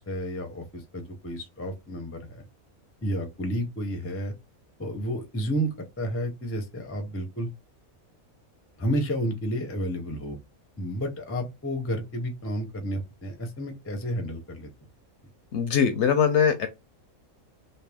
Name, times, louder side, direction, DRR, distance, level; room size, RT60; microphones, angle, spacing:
voice 1, 0.0-2.4 3.0-4.3 4.8-7.5 8.8-10.4 10.8-14.7, equal, 20° left, 0.3 m, -31 dB
voice 2, 15.5-16.7, left 7 dB, 65° left, 0.7 m, -21 dB
3.2 x 2.7 x 3.3 m
omnidirectional pair, 1.5 m